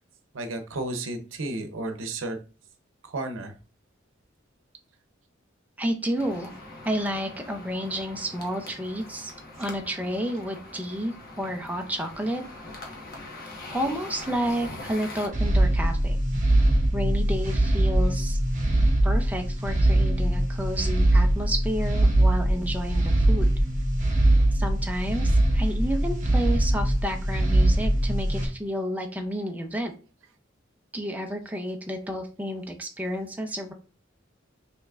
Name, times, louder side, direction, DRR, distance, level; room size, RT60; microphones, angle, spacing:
voice 1, 0.3-2.4 3.0-3.5, right 2 dB, 75° right, 7 dB, 0.8 m, -32 dB
voice 2, 5.8-6.5 6.8-9.3 9.6-12.4 13.7-16.2 16.9-18.4 19.0-23.5 24.5-29.9 30.9-33.7, equal, 10° right, 3 dB, 0.5 m, -31 dB
sound 1, 6.2-15.3, left 2 dB, 50° left, 1.1 m, -42 dB
sound 2, 15.3-28.5, right 1 dB, 40° right, 1.1 m, -22 dB
5.7 x 3.0 x 2.4 m, 0.34 s
head